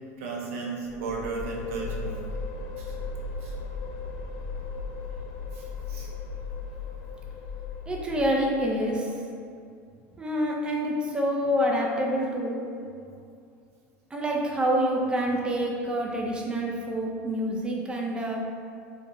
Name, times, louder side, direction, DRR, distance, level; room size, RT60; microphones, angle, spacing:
voice 1, 0.2-2.3 2.8-3.0 3.4-3.5 5.5-6.1, right 3 dB, 80° right, -2 dB, 0.5 m, -35 dB
sound 1, 0.9-8.7, left 4 dB, 60° left, 0.4 m, -36 dB
voice 2, 7.9-9.2 10.2-12.6 14.1-18.4, equal, 15° right, -2 dB, 0.4 m, -27 dB
2.7 x 2.1 x 2.9 m, 2.4 s
hypercardioid pair, 95°, 7 cm